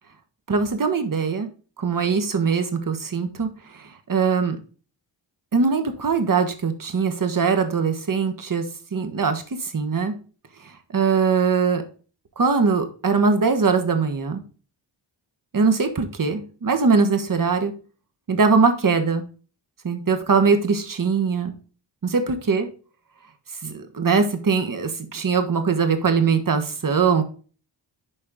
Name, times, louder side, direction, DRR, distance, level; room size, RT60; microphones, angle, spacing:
voice 1, 0.5-1.5 1.8-4.6 5.5-8.6 8.9-10.1 10.9-11.8 12.4-14.4 15.5-17.7 18.3-19.2 19.8-21.5 22.0-22.7 23.6-27.2, right 5 dB, 45° right, 7 dB, 1.4 m, -21 dB
11.0 x 4.3 x 3.7 m, 0.38 s
wide cardioid pair, 85°, 45 cm